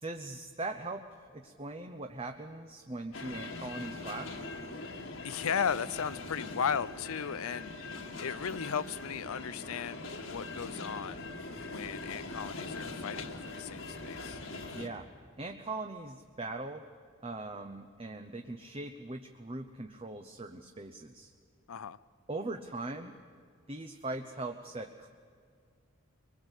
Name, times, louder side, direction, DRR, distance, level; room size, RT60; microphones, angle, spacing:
voice 1, 0.0-1.0 1.3-4.5 14.7-15.1 15.4-16.9 17.2-21.3 22.3-23.2 23.7-25.1, right 2 dB, 25° right, 6 dB, 0.8 m, -40 dB
sound 1, 3.1-14.9, left 3 dB, 65° left, 2.0 m, -42 dB
voice 2, 5.0-11.2 11.7-14.4 21.7-22.0, left 7 dB, 80° left, 16 dB, 0.6 m, -36 dB
24.0 x 21.5 x 8.2 m, 2.2 s
head